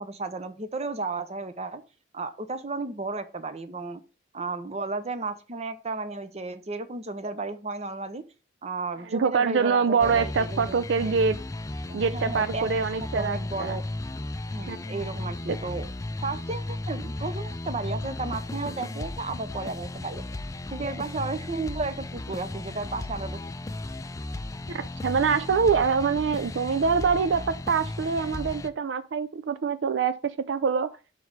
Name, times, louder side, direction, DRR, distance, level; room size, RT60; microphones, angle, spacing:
voice 1, 0.0-1.8 2.1-4.0 4.3-8.2 8.6-11.3 11.9-13.8 14.5-15.9 16.2-20.3 20.7-23.4, right 3 dB, 35° right, 0.7 m, -33 dB
voice 2, 9.1-11.4 11.9-13.8 14.7-14.8 15.5-15.6 24.7-30.9, right 5 dB, 75° right, 0.4 m, -25 dB
sound 1, 10.0-28.7, left 2 dB, 20° left, 0.4 m, -35 dB
5.9 x 4.7 x 4.8 m
head